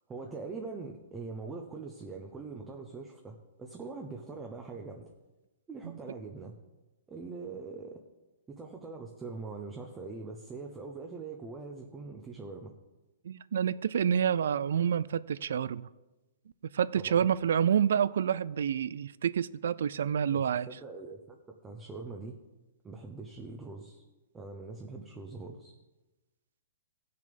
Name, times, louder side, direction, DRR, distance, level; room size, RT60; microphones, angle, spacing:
voice 1, 0.1-5.1 5.7-6.6 7.1-8.0 8.5-12.7 17.0-17.2 20.3-22.4 22.8-24.0 24.3-25.7, right 4 dB, 10° right, 0.8 m, -43 dB
voice 2, 13.2-15.9 16.7-20.7, right 8 dB, 75° right, 0.4 m, -28 dB
16.0 x 6.7 x 5.2 m
hypercardioid pair, 165°, 0 cm